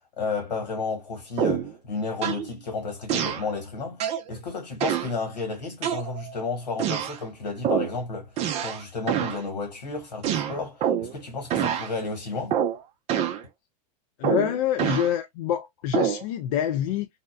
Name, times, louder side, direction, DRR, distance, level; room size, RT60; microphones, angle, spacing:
voice 1, 0.2-4.0 4.3-8.3 8.6-12.6, left 4 dB, 90° left, 1.6 m, -32 dB
sound 1, 1.4-1.7 2.2-2.5 3.1-3.5 4.0-4.3 4.8-5.1 5.8-6.4 6.8-7.2 7.6-7.9 8.4-8.8 9.1-9.4 10.2-11.2 11.5-11.9 12.5-12.8 13.1-13.4 14.2-15.1 15.9-16.2, right 9 dB, 30° right, 0.4 m, -26 dB
voice 2, 14.2-17.1, left 10 dB, 60° left, 0.4 m, -26 dB
2.7 x 2.1 x 2.3 m
hypercardioid pair, 115°, 21 cm